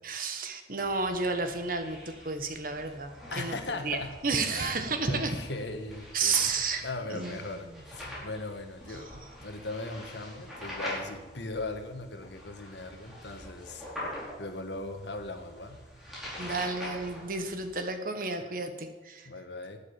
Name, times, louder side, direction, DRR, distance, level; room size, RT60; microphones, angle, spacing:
voice 1, 0.0-3.6 3.8-5.4 6.1-7.4 16.4-19.3, right 4 dB, 50° right, 7 dB, 1.4 m, -31 dB
sound 1, 0.8-17.7, left 1 dB, ahead, 4.9 m, -44 dB
voice 2, 3.3-4.1 4.5-6.5 6.8-9.1 9.4-13.8 14.4-15.8 19.2-19.8, left 2 dB, 70° left, 6 dB, 1.6 m, -39 dB
12.0 x 8.6 x 8.7 m, 1.2 s
head